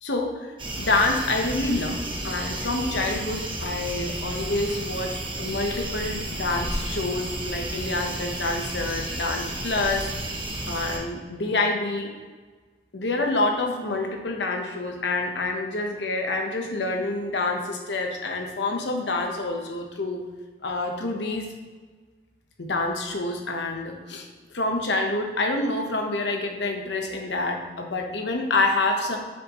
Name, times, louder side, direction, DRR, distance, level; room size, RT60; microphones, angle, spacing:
voice 1, 0.0-10.1 10.7-12.1 12.9-20.2 20.6-21.5 22.6-24.3 24.5-29.2, left 2 dB, 80° left, 3 dB, 1.1 m, -27 dB
sound 1, 0.6-11.0, right 1 dB, 30° right, 1.0 m, -32 dB
7.5 x 6.4 x 3.0 m, 1.4 s
head